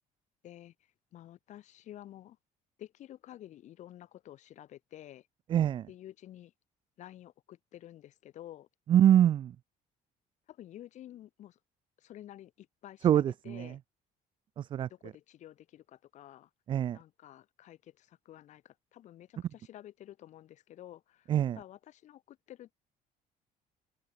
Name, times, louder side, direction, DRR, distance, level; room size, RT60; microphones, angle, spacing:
voice 1, 1.1-2.4 2.8-5.3 5.9-6.5 7.0-8.7 10.5-11.6 12.0-13.8 14.9-16.5 16.9-22.7, left 12 dB, 50° left, 3.0 m, -51 dB
voice 2, 5.5-5.9 8.9-9.5 13.0-13.7 14.6-14.9 16.7-17.0 21.3-21.6, right 10 dB, 35° right, 0.3 m, -24 dB
cardioid pair, 165°, 15 cm